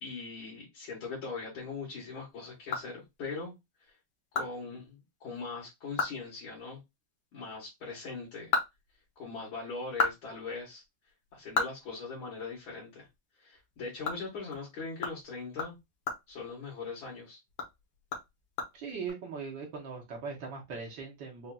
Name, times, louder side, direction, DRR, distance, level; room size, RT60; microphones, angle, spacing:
voice 1, 0.0-3.5 4.3-6.8 7.3-8.5 9.2-10.8 11.3-13.1 13.4-15.8 16.3-17.4, left 4 dB, 80° left, 2.3 m, -40 dB
sound 1, 2.3-3.5 3.9-4.0 4.3-4.5 4.8-4.9 5.4-5.5 5.8-6.2 6.5-6.6 8.1-9.4 9.8-12.7 13.0-13.2 13.5-17.1 17.5-19.1, left 4 dB, 65° left, 1.7 m, -35 dB
voice 2, 18.7-21.5, right 5 dB, 70° right, 1.7 m, -40 dB
5.3 x 2.5 x 2.2 m
omnidirectional pair, 2.2 m